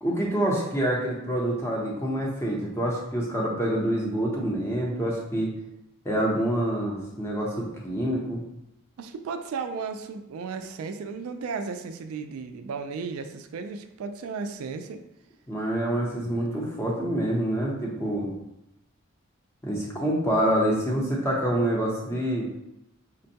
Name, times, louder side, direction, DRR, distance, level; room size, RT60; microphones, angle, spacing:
voice 1, 0.0-5.5 6.0-8.4 15.5-18.3 19.6-22.5, right 1 dB, 10° left, -3 dB, 0.7 m, -26 dB
voice 2, 9.0-15.0 16.2-16.4, right 5 dB, 90° right, 7 dB, 0.3 m, -35 dB
5.2 x 2.2 x 2.7 m, 0.86 s
head